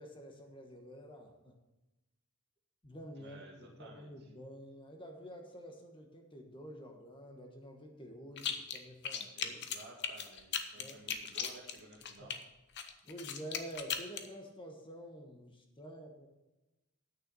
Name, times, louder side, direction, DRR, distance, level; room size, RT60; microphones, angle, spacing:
voice 1, 0.0-1.6 2.8-9.6 10.7-11.0 12.2-12.3 13.0-16.3, equal, 25° left, 3 dB, 1.2 m, -49 dB
voice 2, 3.2-4.1 9.3-12.4, right 2 dB, 50° right, 0 dB, 2.3 m, -54 dB
sound 1, 8.4-8.8 9.0-12.4 12.8-14.3, left 7 dB, 55° left, 0.9 m, -38 dB
8.9 x 6.7 x 6.8 m, 1.0 s
head